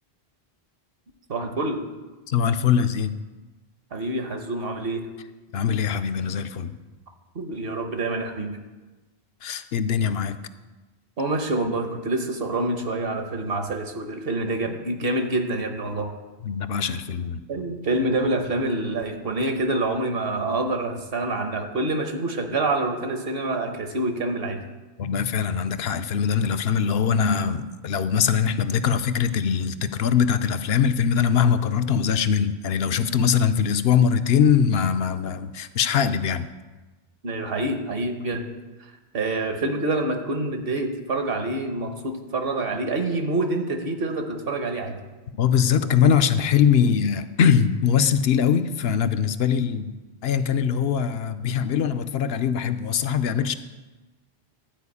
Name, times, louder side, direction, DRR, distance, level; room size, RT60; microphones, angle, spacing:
voice 1, 1.3-1.9 3.9-5.1 7.3-8.6 11.2-16.1 17.5-24.6 37.2-38.5 39.1-45.0, right 2 dB, 65° right, 6 dB, 1.2 m, -26 dB
voice 2, 2.3-3.1 5.5-6.8 9.4-10.4 16.4-17.4 25.0-36.5 45.4-50.0 50.2-53.6, left 7 dB, 75° left, 10 dB, 0.8 m, -22 dB
12.0 x 4.6 x 8.3 m, 1.2 s
omnidirectional pair, 1.1 m